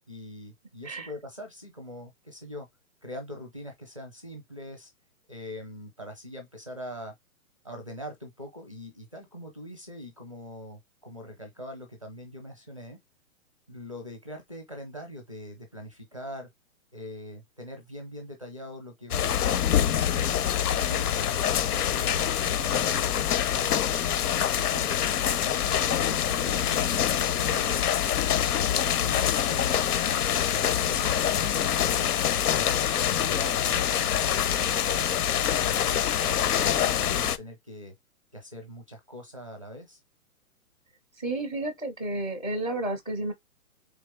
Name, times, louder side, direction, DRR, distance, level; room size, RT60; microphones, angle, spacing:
voice 1, 0.1-2.7 3.0-4.9 5.3-7.1 7.6-13.0 13.7-16.5 16.9-19.6 20.0-24.1 24.6-27.9 28.2-32.1 32.5-34.6 34.9-37.9 38.3-40.0, left 1 dB, 25° right, 0.5 m, -42 dB
sound 1, 19.1-37.4, left 10 dB, 85° left, 0.7 m, -25 dB
voice 2, 41.2-43.3, right 1 dB, 30° left, 0.4 m, -31 dB
3.7 x 3.6 x 3.4 m
hypercardioid pair, 180°, 45 cm